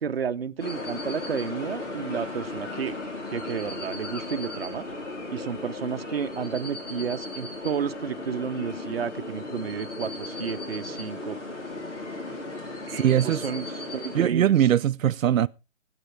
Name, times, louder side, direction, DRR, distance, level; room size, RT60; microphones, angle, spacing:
voice 1, 0.0-3.0 3.3-4.8 5.3-11.4 12.9-14.7, right 6 dB, 50° right, 0.8 m, -31 dB
sound 1, 0.6-14.3, left 2 dB, 65° left, 4.2 m, -36 dB
voice 2, 12.9-13.4 14.1-15.5, right 10 dB, 85° right, 0.5 m, -21 dB
21.5 x 9.2 x 3.3 m
hypercardioid pair, 175°, 39 cm